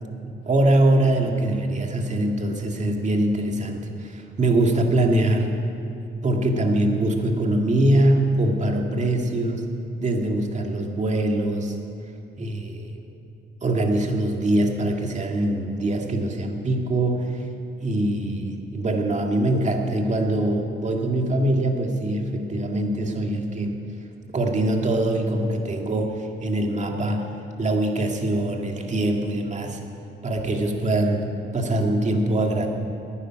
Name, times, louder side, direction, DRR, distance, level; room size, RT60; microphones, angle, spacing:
voice 1, 0.2-5.6 6.2-9.6 10.0-11.8 12.4-13.0 13.6-17.5 17.8-23.8 24.3-27.3 27.6-29.8 30.2-31.2 31.5-32.7, right 1 dB, 35° right, 2 dB, 2.1 m, -23 dB
12.5 x 9.7 x 9.9 m, 2.7 s
cardioid pair, 90°, 20 cm